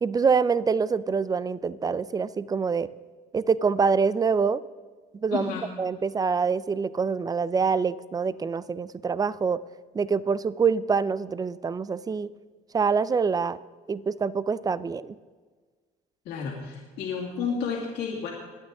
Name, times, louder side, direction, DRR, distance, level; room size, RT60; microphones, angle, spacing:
voice 1, 0.0-2.9 3.3-4.6 5.2-5.5 5.8-9.6 9.9-12.3 12.7-13.6 13.9-15.1, right 5 dB, 20° right, 17 dB, 0.5 m, -25 dB
voice 2, 5.3-5.7 16.2-18.3, left 6 dB, 85° left, -3 dB, 2.5 m, -31 dB
21.0 x 8.9 x 3.8 m, 1.4 s
cardioid pair, 110°, 17 cm